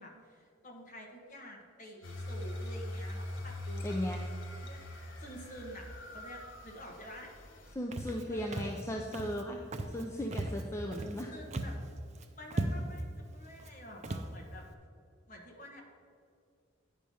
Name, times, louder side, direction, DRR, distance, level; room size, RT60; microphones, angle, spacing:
voice 1, 0.0-4.0 4.6-4.8 5.2-7.3 8.3-8.8 11.0-11.8 12.4-14.6 15.3-15.8, equal, 40° left, 0 dB, 1.3 m, -49 dB
sound 1, 2.0-7.8, left 1 dB, 75° left, 1.0 m, -42 dB
voice 2, 3.8-4.2 7.7-9.6 9.9-11.3, equal, 15° left, 0 dB, 0.4 m, -36 dB
Walk footsteps, 7.9-8.2 8.5-8.8 9.1-9.4 9.7-10.0 10.3-11.2 11.5-11.9 12.2-12.3 12.5-13.0 13.6-13.7 14.0-14.3, right 1 dB, 35° right, 0.5 m, -36 dB
9.9 x 4.9 x 5.5 m, 2.4 s
head